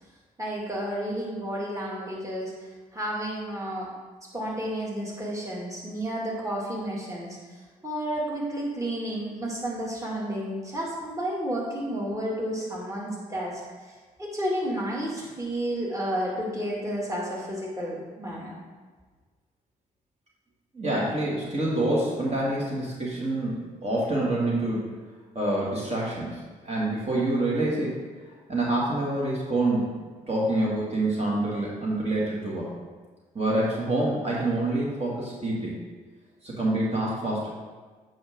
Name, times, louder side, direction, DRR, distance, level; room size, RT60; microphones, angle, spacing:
voice 1, 0.4-3.9 4.3-7.4 7.8-13.9 14.2-18.6, equal, 20° right, -4 dB, 2.4 m, -31 dB
voice 2, 20.7-24.9 25.3-28.0 28.5-29.9 30.3-32.7 33.3-35.7 36.4-37.5, right 1 dB, 35° right, -5 dB, 2.3 m, -27 dB
8.5 x 5.5 x 3.8 m, 1.4 s
hypercardioid pair, 45°, 18 cm